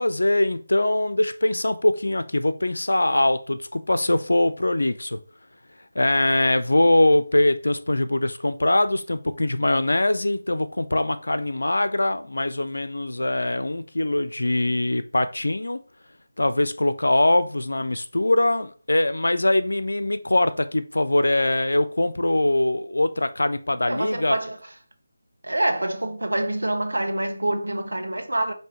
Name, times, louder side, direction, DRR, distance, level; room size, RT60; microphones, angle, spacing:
voice 1, 0.0-5.2 6.0-15.8 16.4-24.4, left 1 dB, 70° left, 0.4 m, -22 dB
voice 2, 23.9-24.6 25.4-28.5, right 1 dB, 75° right, 0.9 m, -26 dB
5.3 x 2.7 x 3.0 m
figure-of-eight pair, 160°, 0 cm